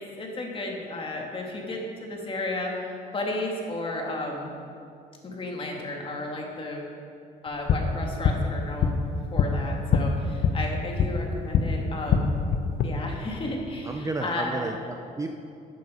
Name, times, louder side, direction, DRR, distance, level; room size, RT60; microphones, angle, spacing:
voice 1, 0.0-2.7 3.1-4.5 5.2-6.8 7.4-9.0 9.3-10.1 10.5-12.3 12.8-14.7, left 2 dB, 30° left, 0 dB, 2.4 m, -33 dB
sound 1, 7.5-11.7 12.0-12.9, left 6 dB, 60° left, 1.0 m, -25 dB
voice 2, 13.9-15.4, right 2 dB, 20° right, 4 dB, 0.7 m, -32 dB
13.5 x 9.2 x 5.1 m, 2.5 s
cardioid pair, 110°, 17 cm